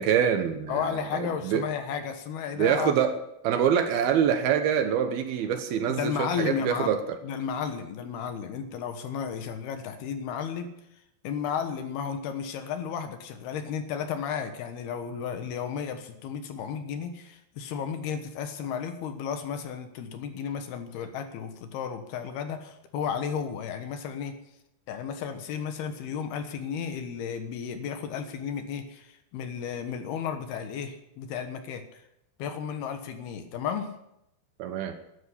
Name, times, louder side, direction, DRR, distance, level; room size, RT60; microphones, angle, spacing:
voice 1, 0.0-0.9 1.2-1.6 2.6-3.1 3.4-6.1 6.4-7.0 34.6-35.0, right 8 dB, 70° right, 8 dB, 2.7 m, -25 dB
voice 2, 0.7-2.9 5.9-6.9 7.2-10.7 11.2-24.4 24.9-32.0 32.4-34.0, left 7 dB, 70° left, 8 dB, 3.1 m, -33 dB
13.0 x 10.5 x 8.5 m, 0.82 s
omnidirectional pair, 5.0 m